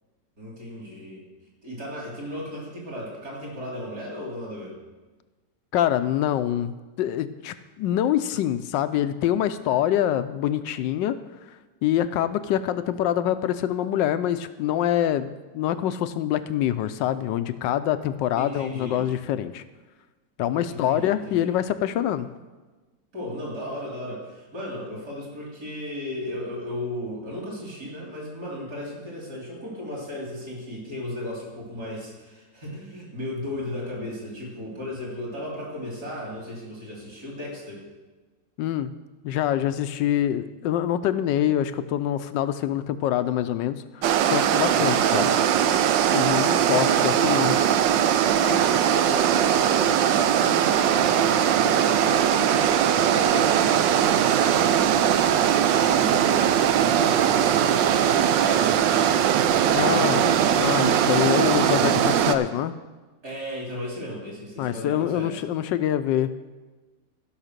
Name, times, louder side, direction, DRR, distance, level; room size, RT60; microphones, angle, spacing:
voice 1, 0.4-1.2 1.6-4.8 18.3-19.1 20.7-21.6 23.1-37.8 44.6-45.7 46.8-47.9 48.4-52.6 52.9-55.4 55.8-61.1 61.7-62.3 63.2-65.3, left 1 dB, 50° right, -3 dB, 3.9 m, -35 dB
voice 2, 5.7-11.2 11.5-19.6 20.4-22.3 38.6-38.9 39.2-45.3 46.1-47.7 59.7-60.2 60.6-62.8 64.6-66.3, left 11 dB, 75° left, 12 dB, 1.2 m, -25 dB
sound 1, 44.0-62.4, right 9 dB, 75° right, 1.3 m, -20 dB
15.0 x 5.7 x 6.6 m, 1.3 s
omnidirectional pair, 2.1 m